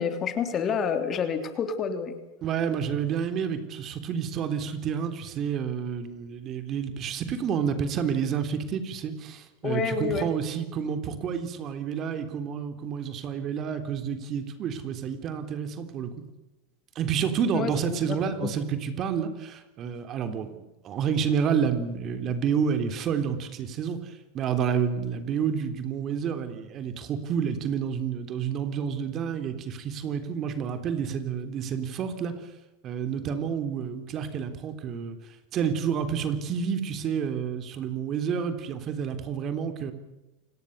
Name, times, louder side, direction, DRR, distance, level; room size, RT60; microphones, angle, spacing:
voice 1, 0.0-2.1 9.6-10.3 17.5-18.2 18.4-18.5, left 6 dB, 30° left, 8 dB, 3.0 m, -28 dB
voice 2, 2.4-16.1 17.0-32.3 32.8-35.2 35.5-39.9, right 7 dB, 35° right, 8 dB, 3.5 m, -29 dB
28.5 x 18.5 x 6.8 m, 1.0 s
supercardioid pair, 120°, 0 cm